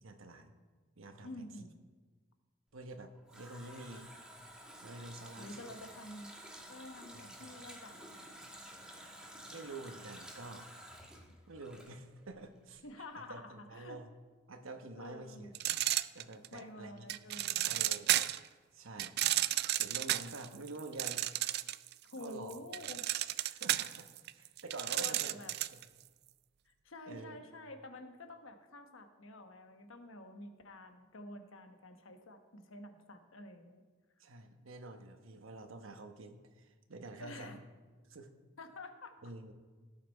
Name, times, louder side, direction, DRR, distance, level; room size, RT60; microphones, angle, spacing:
voice 1, 0.0-0.5 1.0-1.4 2.7-4.1 4.8-5.5 7.1-7.5 9.5-10.7 11.5-12.8 13.3-14.1 14.5-15.5 16.1-17.1 17.6-18.1 18.7-19.2 19.7-21.2 22.2-22.6 23.4-24.1 24.3-25.8 27.1-27.4 34.2-37.6 38.1-38.3 39.2-39.5, right 2 dB, 80° right, 7 dB, 1.1 m, -48 dB
voice 2, 1.2-1.8 5.4-6.3 6.7-8.3 12.8-14.0 15.0-15.5 16.5-17.8 22.0-23.0 25.0-25.6 26.6-33.8 37.2-37.6 38.6-39.2, left 2 dB, 75° left, 6 dB, 1.1 m, -49 dB
Water tap faucet, 3.1-12.4 12.7-12.8, right 1 dB, 5° right, 1.3 m, -52 dB
sound 1, 15.5-16.6 17.1-18.5 19.0-21.9 22.2-25.8, right 14 dB, 50° right, 0.3 m, -33 dB
17.0 x 5.9 x 4.6 m, 1.4 s
head